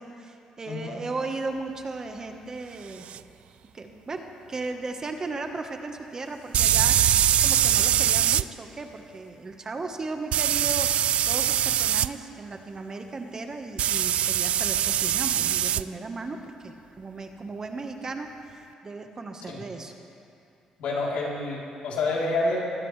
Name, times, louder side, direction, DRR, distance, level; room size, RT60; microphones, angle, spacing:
voice 1, 0.0-3.1 3.7-10.9 11.2-19.9, right 3 dB, 30° right, 5 dB, 1.3 m, -36 dB
voice 2, 0.6-1.0 19.5-19.6 20.8-22.6, left 2 dB, 85° left, -4 dB, 3.5 m, -28 dB
sound 1, 3.1-3.2 6.5-8.4 10.3-12.1 13.8-15.8, right 11 dB, 70° right, 0.3 m, -22 dB
23.0 x 17.0 x 3.3 m, 2.6 s
cardioid pair, 105°, 2 cm